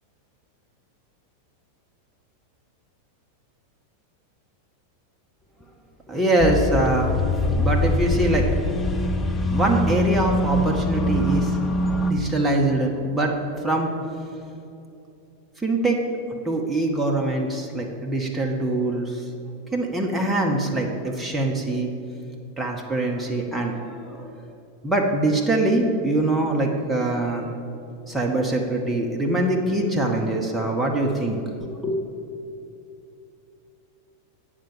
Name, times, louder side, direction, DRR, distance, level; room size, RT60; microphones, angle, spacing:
voice 1, 6.1-7.2 7.5-8.5 9.5-11.6 12.1-13.3 13.6-13.9 15.6-16.0 16.4-19.2 19.7-21.9 22.6-24.3 24.8-27.5 28.1-32.0, right 2 dB, 5° right, -1 dB, 0.9 m, -23 dB
sound 1, 6.4-12.1, left 1 dB, 15° left, 0.7 m, -23 dB
9.1 x 4.9 x 7.1 m, 2.7 s
figure-of-eight pair, 90°, 0 cm